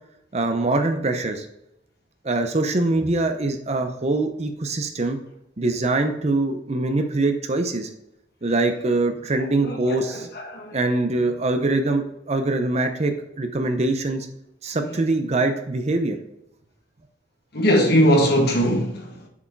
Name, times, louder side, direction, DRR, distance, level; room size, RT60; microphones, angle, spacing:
voice 1, 0.3-1.5 2.2-5.2 5.6-7.9 8.4-10.3 10.7-14.3 14.6-16.2, right 2 dB, 35° right, 0.7 m, -23 dB
voice 2, 9.6-10.7 17.5-19.1, equal, 55° left, 1.6 m, -20 dB
7.0 x 4.7 x 4.6 m
head